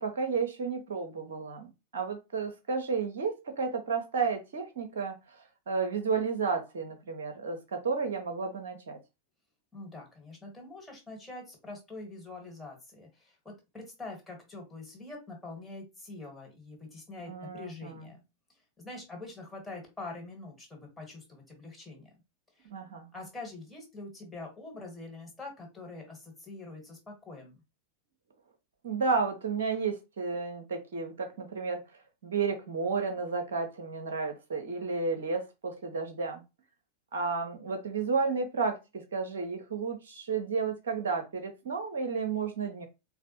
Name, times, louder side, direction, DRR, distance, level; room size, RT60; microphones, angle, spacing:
voice 1, 0.0-9.0 17.3-18.1 22.7-23.1 28.8-31.8 32.2-36.4 37.1-42.9, right 4 dB, 60° right, 6 dB, 0.7 m, -32 dB
voice 2, 9.7-18.2 18.8-22.1 22.6-22.7 23.1-27.6, left 2 dB, 10° left, -1 dB, 1.4 m, -45 dB
4.0 x 2.1 x 2.8 m, 0.25 s
figure-of-eight pair, 90°, 0 cm